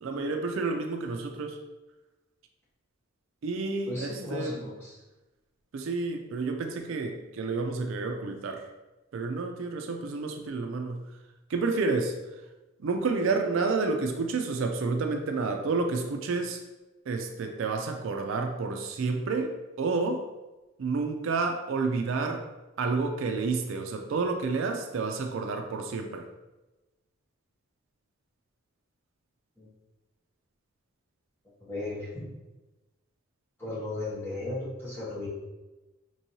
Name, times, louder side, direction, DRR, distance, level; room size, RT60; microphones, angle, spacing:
voice 1, 0.0-1.6 3.4-4.6 5.7-8.7 9.1-11.1 11.5-12.1 12.8-16.6 17.1-20.2 20.8-22.4 22.8-26.3, right 4 dB, 65° right, 4 dB, 0.4 m, -30 dB
voice 2, 3.9-5.0 29.6-29.7 31.6-32.3 33.6-35.3, left 2 dB, 10° left, -8 dB, 1.1 m, -35 dB
4.4 x 3.1 x 2.7 m, 1.1 s
head